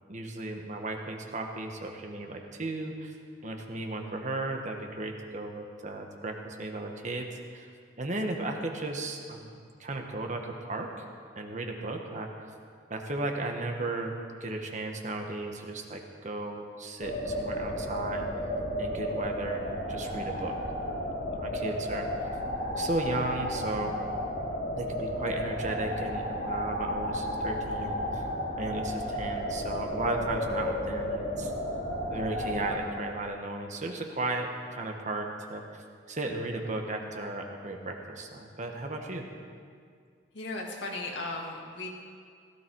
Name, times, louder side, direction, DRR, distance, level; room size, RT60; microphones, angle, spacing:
voice 1, 0.1-3.1 3.4-7.7 8.0-11.0 11.3-12.5 12.9-14.1 14.4-18.5 18.8-20.6 20.8-21.0 21.3-22.3 22.7-23.9 24.7-28.3 28.6-31.5 32.1-39.2, right 2 dB, 40° right, 3 dB, 1.4 m, -35 dB
sound 1, 17.0-32.8, equal, 50° left, 2.9 m, -33 dB
voice 2, 40.3-41.9, left 2 dB, 70° left, -1 dB, 2.3 m, -36 dB
16.5 x 14.5 x 4.7 m, 2.1 s
head